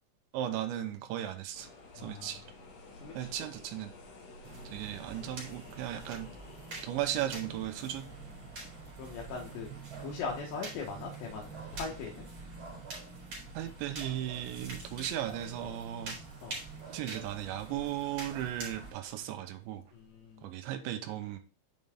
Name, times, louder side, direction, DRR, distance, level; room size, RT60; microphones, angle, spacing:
voice 1, 0.3-1.7 2.0-2.4 3.1-3.9 4.7-6.3 6.8-8.1 13.5-16.2 16.9-19.8 20.4-21.4, right 12 dB, 85° right, 8 dB, 3.2 m, -36 dB
sound 1, 1.5-20.5, left 2 dB, 55° left, 1.9 m, -56 dB
voice 2, 2.0-2.3 3.0-3.1 4.5-4.8 9.0-9.7 10.0-12.2 16.4-16.6 19.9-20.5, left 5 dB, 75° left, -1 dB, 3.4 m, -40 dB
sound 2, 4.4-18.9, right 3 dB, 40° right, 4.0 m, -45 dB
7.7 x 5.5 x 3.6 m, 0.35 s
omnidirectional pair, 5.3 m